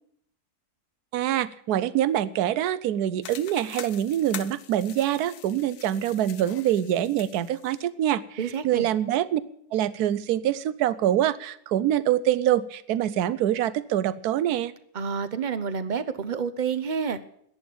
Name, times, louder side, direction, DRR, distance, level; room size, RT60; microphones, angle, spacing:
voice 1, 1.1-8.4 8.6-9.4 9.7-14.7, right 11 dB, 70° right, 17 dB, 1.2 m, -25 dB
sound 1, 3.2-7.8, left 10 dB, 70° left, 1.2 m, -43 dB
voice 2, 8.4-8.9 14.9-17.2, right 6 dB, 45° right, 13 dB, 0.6 m, -29 dB
11.0 x 10.5 x 8.4 m, 0.67 s
omnidirectional pair, 1.8 m